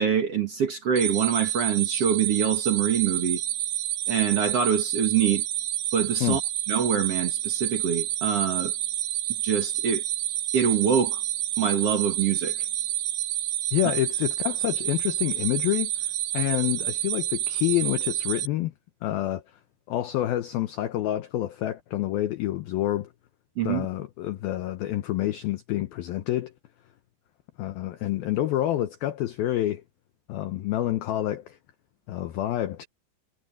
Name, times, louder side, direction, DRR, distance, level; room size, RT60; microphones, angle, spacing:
voice 1, 0.0-3.4 4.1-5.4 5.9-6.4 6.7-8.7 9.4-10.0 10.5-11.2 11.6-12.6 23.6-23.9, right 8 dB, 60° right, 1.6 m, -25 dB
sound 1, 1.0-18.5, right 13 dB, 80° right, 3.4 m, -29 dB
voice 2, 13.7-15.9 16.3-18.7 19.0-19.4 19.9-23.1 23.6-26.5 27.6-29.8 30.3-31.6 32.1-32.9, left 14 dB, 75° left, 2.3 m, -27 dB
omnidirectional pair, 5.2 m